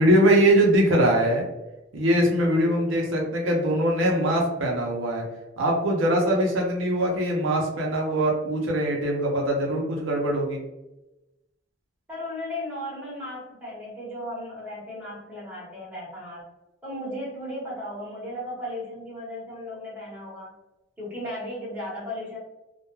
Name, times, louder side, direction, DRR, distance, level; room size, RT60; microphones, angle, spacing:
voice 1, 0.0-1.5 1.9-5.2 5.6-10.6, right 1 dB, 80° right, -1 dB, 0.6 m, -22 dB
voice 2, 12.1-16.4 16.8-20.5 21.0-22.4, left 1 dB, 10° right, -7 dB, 1.0 m, -35 dB
2.2 x 2.2 x 2.9 m, 0.98 s
head